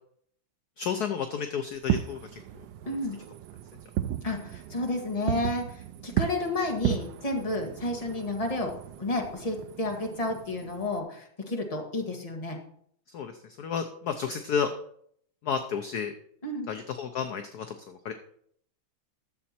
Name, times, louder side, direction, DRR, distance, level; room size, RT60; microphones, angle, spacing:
voice 1, 0.8-2.4 2.9-3.0 13.1-14.7 15.4-16.1 16.7-18.1, left 7 dB, 65° left, 7 dB, 1.1 m, -32 dB
Fireworks, 1.7-11.0, right 12 dB, 75° right, 1.1 m, -35 dB
voice 2, 2.8-3.2 4.2-12.6 16.4-16.7, left 2 dB, 20° left, 2 dB, 1.4 m, -31 dB
11.5 x 7.6 x 4.3 m, 0.65 s
omnidirectional pair, 2.2 m